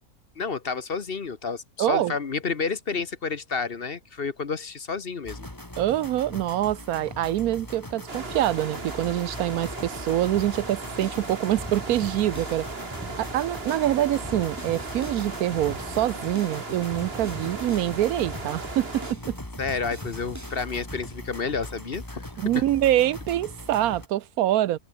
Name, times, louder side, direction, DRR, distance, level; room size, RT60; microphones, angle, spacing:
voice 1, 0.4-5.5 19.6-22.6, left 5 dB, 45° left, 1.3 m, -30 dB
voice 2, 1.8-2.1 5.8-12.7 13.2-19.4 22.4-24.8, right 13 dB, 85° right, 1.1 m, -25 dB
sound 1, 5.2-24.1, left 1 dB, 15° left, 2.7 m, -40 dB
sound 2, 8.1-19.1, right 3 dB, 40° right, 2.7 m, -37 dB
sound 3, 10.4-21.0, right 1 dB, 10° right, 2.5 m, -42 dB
omnidirectional pair, 1.5 m